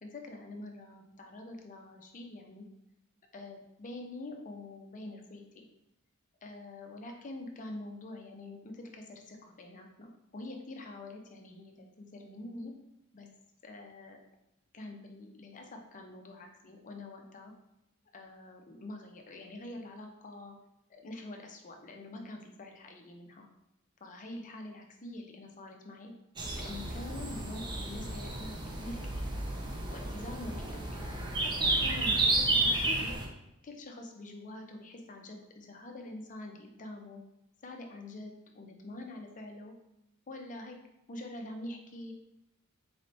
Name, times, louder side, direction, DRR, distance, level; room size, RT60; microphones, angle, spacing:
voice 1, 0.0-2.7 3.3-5.6 6.4-12.7 13.1-13.3 13.6-14.2 14.7-17.5 18.1-20.5 20.9-23.5 24.0-26.1 26.5-29.3 29.9-31.0 31.4-33.2 33.6-37.2 37.6-39.7 40.3-40.8 41.1-42.1, left 2 dB, 35° left, 2 dB, 0.6 m, -45 dB
sound 1, 26.4-33.3, right 2 dB, 20° right, 0.5 m, -31 dB
4.1 x 3.2 x 2.7 m, 0.85 s
head